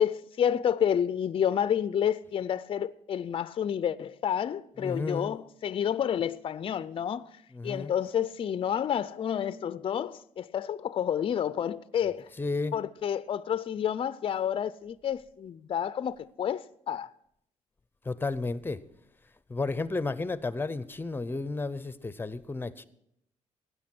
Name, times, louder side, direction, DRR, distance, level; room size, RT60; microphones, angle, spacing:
voice 1, 0.0-7.3 7.6-12.3 12.7-17.1, left 9 dB, 45° left, 0.5 m, -29 dB
voice 2, 4.8-5.3 7.5-7.9 12.4-12.8 18.0-18.8 19.5-22.9, left 3 dB, 15° left, 0.7 m, -32 dB
16.0 x 9.8 x 6.1 m
cardioid pair, 100°, 13 cm